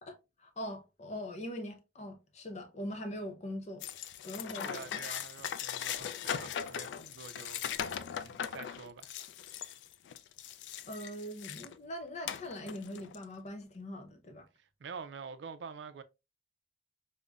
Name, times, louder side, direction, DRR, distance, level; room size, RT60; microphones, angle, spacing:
voice 1, 0.0-3.9 4.2-4.7 5.1-5.2 10.9-14.5, equal, 40° left, 0.6 m, -42 dB
sound 1, 3.8-11.8 12.2-13.2, left 8 dB, 85° left, 0.3 m, -39 dB
voice 2, 4.6-7.9 8.2-9.1 14.6-16.0, right 5 dB, 80° right, 0.4 m, -47 dB
5.2 x 2.1 x 2.3 m
head